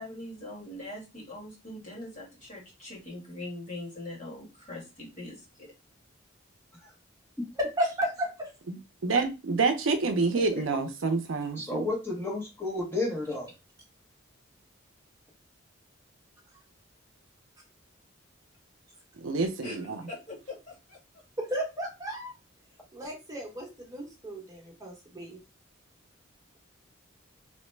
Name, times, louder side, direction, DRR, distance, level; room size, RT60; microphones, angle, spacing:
voice 1, 0.0-5.7 19.6-21.0, left 1 dB, 40° left, -3 dB, 1.5 m, -42 dB
voice 2, 7.5-8.5 21.4-22.3 22.9-25.4, equal, 15° right, -1 dB, 0.9 m, -33 dB
voice 3, 9.0-11.8 19.2-20.0, right 4 dB, 70° right, 6 dB, 0.5 m, -27 dB
voice 4, 11.6-13.5, left 2 dB, 10° left, -3 dB, 0.7 m, -32 dB
3.1 x 2.1 x 3.1 m, 0.27 s
head